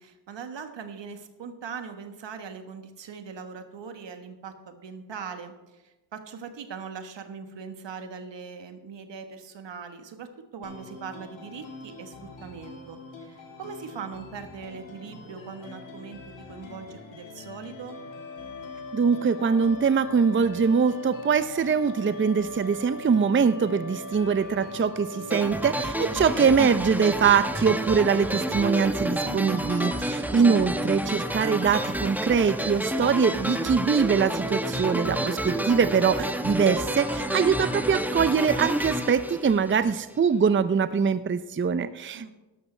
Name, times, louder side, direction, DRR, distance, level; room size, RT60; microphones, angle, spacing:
voice 1, 0.0-16.2 16.5-18.0 29.2-29.8 42.1-42.3, right 6 dB, 70° right, 7 dB, 1.5 m, -40 dB
sound 1, 10.6-26.6, left 3 dB, 85° left, 2.1 m, -45 dB
sound 2, 17.8-28.8, left 1 dB, 45° left, 2.5 m, -40 dB
voice 2, 18.9-42.3, right 6 dB, 25° right, 13 dB, 0.6 m, -23 dB
sound 3, 25.3-40.1, right 1 dB, 5° right, 1.1 m, -29 dB
13.0 x 12.0 x 3.3 m, 1.1 s
supercardioid pair, 50°, 45 cm